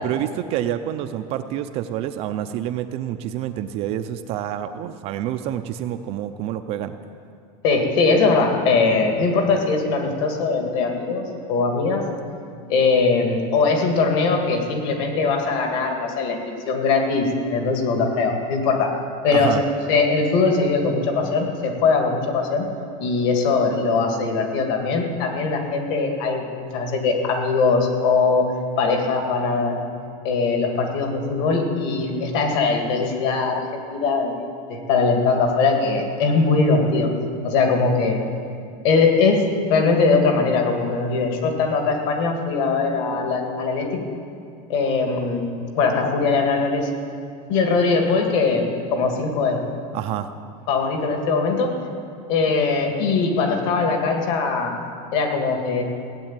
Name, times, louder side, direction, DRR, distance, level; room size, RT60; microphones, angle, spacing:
voice 1, 0.0-6.9 19.3-19.6 49.9-50.3, right 11 dB, 30° right, 8 dB, 0.4 m, -27 dB
voice 2, 7.6-12.0 12.7-16.4 16.7-18.9 19.2-19.6 19.9-22.7 23.0-28.5 28.8-29.8 30.2-34.4 34.7-37.1 37.4-38.2 38.8-44.0 44.7-46.9 47.5-49.6 50.7-51.7 52.3-54.7 55.1-55.8, left 4 dB, 50° left, 3 dB, 2.2 m, -21 dB
16.5 x 8.3 x 8.8 m, 2.3 s
supercardioid pair, 180°, 19 cm